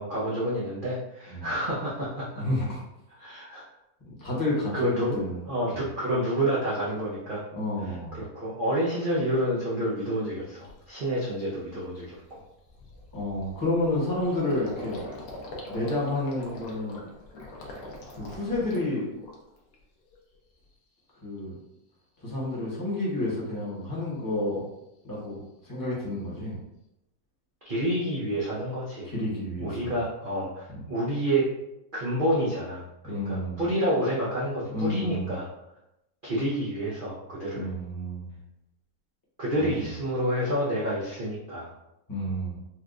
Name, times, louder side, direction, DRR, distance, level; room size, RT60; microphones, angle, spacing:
voice 1, 0.0-2.4 3.2-3.6 4.7-5.2 5.5-7.4 8.2-12.2 27.6-29.1 29.6-31.5 31.9-35.5 36.2-37.7 39.4-41.7, equal, 85° right, -7 dB, 0.4 m, -29 dB
voice 2, 2.4-2.8 4.2-5.4 5.7-5.8 7.5-8.2 13.1-15.0 15.7-17.0 18.1-19.1 21.2-21.6 22.2-24.6 25.0-25.4 25.6-26.6 29.0-29.9 30.7-30.8 33.0-33.6 34.7-35.3 37.5-38.3 39.6-39.9 42.1-42.6, left 1 dB, 15° left, -6 dB, 0.8 m, -30 dB
Gurgling, 10.1-10.2 10.6-10.9 11.3-11.4 11.7-19.7 20.1-20.7, left 1 dB, 65° left, 1.2 m, -43 dB
4.4 x 2.2 x 2.4 m, 0.87 s
omnidirectional pair, 1.9 m